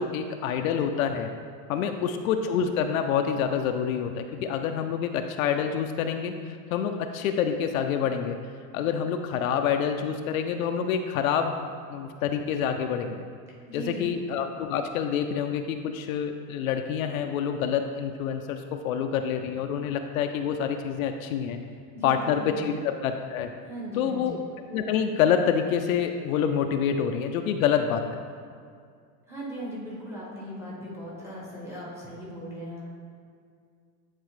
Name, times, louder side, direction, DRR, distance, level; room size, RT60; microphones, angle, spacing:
voice 1, 0.0-1.3 1.7-8.4 8.7-11.5 11.9-13.2 13.7-21.6 22.0-23.5 24.0-24.4 24.7-28.2, left 7 dB, 65° left, 6 dB, 0.5 m, -27 dB
voice 2, 1.7-2.1 13.7-14.1 21.9-22.7 23.6-24.3 29.3-32.8, right 1 dB, 5° right, -6 dB, 0.8 m, -38 dB
9.3 x 4.0 x 3.2 m, 2.2 s
supercardioid pair, 170°, 45 cm